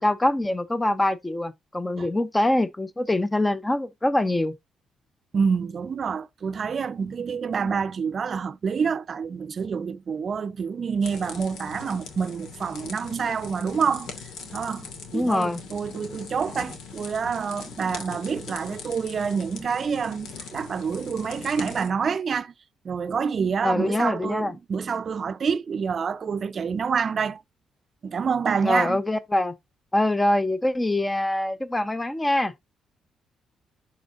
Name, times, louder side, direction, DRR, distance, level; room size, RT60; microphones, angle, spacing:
voice 1, 0.0-4.6 15.1-15.6 23.6-24.5 28.6-29.5 29.9-32.5, left 1 dB, 15° left, 0.8 m, -24 dB
voice 2, 5.3-14.1 14.5-22.5 22.8-27.4 28.0-29.0, right 6 dB, 45° right, 0.6 m, -27 dB
sound 1, 11.0-21.9, left 5 dB, 80° left, 2.2 m, -41 dB
11.5 x 4.4 x 2.5 m
cardioid pair, 90°, 0 cm